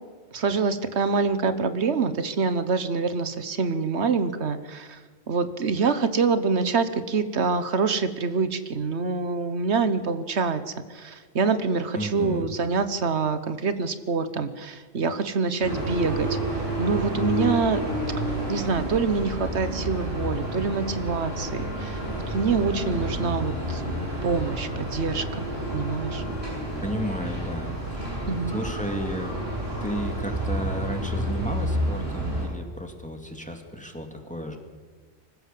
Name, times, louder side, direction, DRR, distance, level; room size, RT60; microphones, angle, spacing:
voice 1, 0.3-5.0 5.3-16.3 16.5-17.8 18.5-22.0 22.3-23.8 24.2-25.4 25.7-26.2 28.3-28.6, right 4 dB, 85° right, 11 dB, 1.4 m, -26 dB
voice 2, 11.9-12.5 26.8-28.0 28.5-29.4 29.8-34.6, equal, 5° left, 4 dB, 2.5 m, -33 dB
sound 1, 15.6-32.5, right 1 dB, 65° right, 8.5 m, -30 dB
25.0 x 15.5 x 7.6 m, 1.5 s
omnidirectional pair, 1.1 m